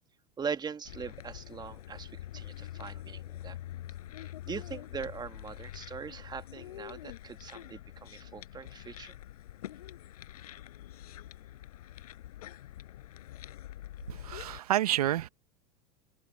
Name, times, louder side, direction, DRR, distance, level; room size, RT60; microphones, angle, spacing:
voice 1, 0.4-3.6 4.2-9.1, right 6 dB, 20° right, 2.1 m, -41 dB
sound 1, 0.8-14.6, left 13 dB, 75° left, 7.4 m, -45 dB
voice 2, 14.1-15.3, right 13 dB, 80° right, 1.2 m, -29 dB
hypercardioid pair, 90°, 19 cm